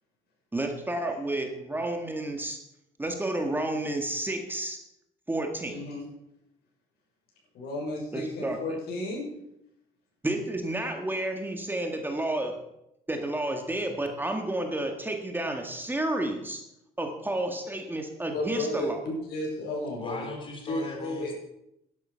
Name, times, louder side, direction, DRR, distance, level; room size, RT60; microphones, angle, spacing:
voice 1, 0.5-2.6 3.0-4.8 5.3-5.8 8.1-8.6 10.2-12.6 13.1-16.6 17.0-19.0, right 1 dB, 10° right, 4 dB, 1.8 m, -31 dB
voice 2, 5.7-6.0 7.5-9.2 18.3-20.3 20.6-21.3, left 1 dB, 70° left, -2 dB, 6.7 m, -33 dB
voice 3, 20.0-21.3, left 2 dB, 30° left, 2 dB, 3.5 m, -38 dB
12.0 x 11.5 x 5.7 m, 0.82 s
cardioid pair, 110°, 17 cm